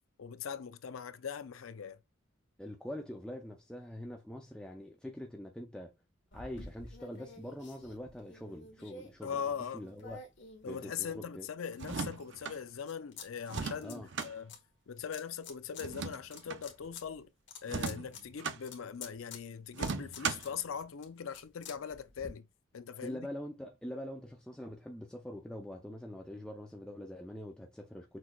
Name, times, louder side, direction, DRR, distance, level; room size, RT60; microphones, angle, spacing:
voice 1, 0.2-2.0 9.2-9.8 10.6-14.5 14.9-17.3 17.6-22.5 22.7-23.3, left 7 dB, 80° left, 0.5 m, -41 dB
voice 2, 2.6-5.9 6.3-9.4 9.7-10.2 10.6-11.5 13.8-14.1 23.0-28.2, left 1 dB, 5° left, 0.4 m, -44 dB
sound 1, 6.3-11.4 11.9-13.3 13.5-14.6 15.1-15.9 16.2-22.3, left 4 dB, 60° left, 1.3 m, -51 dB
sound 2, 11.7-12.6 13.5-14.3 15.8-16.6 17.6-18.6 19.7-20.6, right 5 dB, 60° right, 0.6 m, -37 dB
6.0 x 3.1 x 2.3 m
head